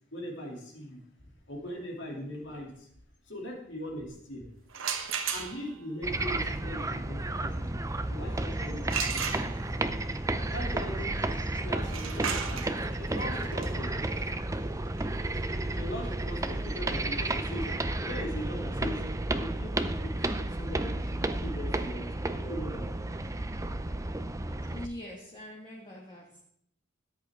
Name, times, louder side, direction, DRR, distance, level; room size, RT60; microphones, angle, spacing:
voice 1, 0.1-1.0 1.5-2.9 3.2-4.4 5.3-7.8 8.1-9.5 10.5-11.1 11.6-14.3 15.7-19.0 19.3-22.9, equal, 65° left, -1 dB, 3.0 m, -40 dB
sound 1, 4.7-5.9 8.9-9.9 11.8-17.5, right 7 dB, 90° right, 1.2 m, -36 dB
sound 2, 6.0-24.9, right 2 dB, 15° right, 0.6 m, -32 dB
voice 2, 24.6-26.4, left 1 dB, 25° left, -4 dB, 2.0 m, -43 dB
13.5 x 9.7 x 3.7 m, 0.69 s
head